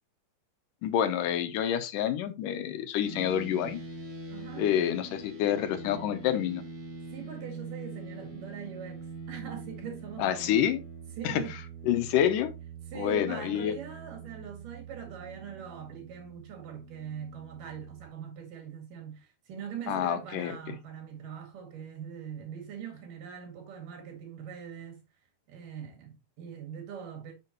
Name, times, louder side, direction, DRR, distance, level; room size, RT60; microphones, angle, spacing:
voice 1, 0.8-3.8 4.6-6.6 10.2-10.8 11.2-11.4 11.8-12.5 13.0-13.7 19.9-20.6, left 10 dB, 85° left, 2.5 m, -28 dB
sound 1, 3.0-18.1, right 4 dB, 40° right, 2.4 m, -44 dB
voice 2, 4.3-4.7 7.1-10.7 11.2-11.6 12.9-25.0 25.5-27.3, right 7 dB, 85° right, 3.7 m, -42 dB
6.9 x 6.8 x 3.0 m
omnidirectional pair, 3.7 m